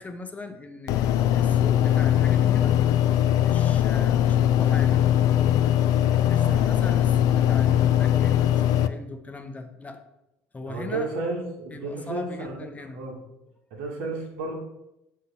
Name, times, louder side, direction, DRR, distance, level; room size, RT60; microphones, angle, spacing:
voice 1, 0.0-2.8 3.3-5.1 6.3-10.0 10.5-11.1 11.7-13.0, left 3 dB, 20° left, 6 dB, 0.8 m, -39 dB
sound 1, 0.9-8.9, left 11 dB, 65° left, 0.4 m, -21 dB
voice 2, 6.1-6.6 10.7-13.2 13.7-14.5, right 3 dB, 80° right, -1 dB, 1.9 m, -33 dB
6.2 x 3.9 x 5.6 m, 0.89 s
hypercardioid pair, 75°, 7 cm